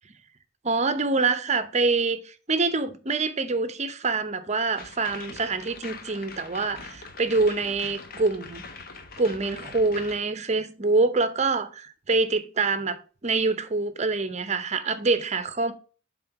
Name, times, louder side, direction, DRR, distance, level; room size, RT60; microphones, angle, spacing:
voice 1, 0.6-2.2 2.5-8.6 9.2-15.7, right 3 dB, 35° right, 0.8 m, -25 dB
sound 1, 4.8-10.2, left 4 dB, 55° left, 1.0 m, -42 dB
7.5 x 3.7 x 5.8 m
head